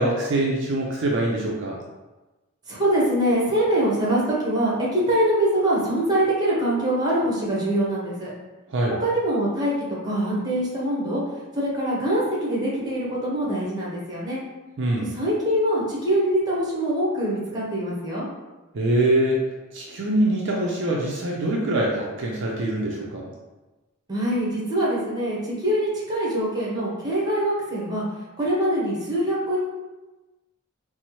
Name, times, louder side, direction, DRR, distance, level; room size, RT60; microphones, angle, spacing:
voice 1, 0.0-1.8 8.7-8.9 14.8-15.1 18.7-19.4 19.7-23.3, right 1 dB, 55° right, -2 dB, 0.4 m, -24 dB
voice 2, 2.7-8.3 9.0-9.7 10.0-11.2 11.5-14.4 15.1-18.3 24.1-28.0 28.4-29.6, right 1 dB, 20° right, -5 dB, 0.8 m, -23 dB
4.1 x 2.0 x 2.9 m, 1.1 s
head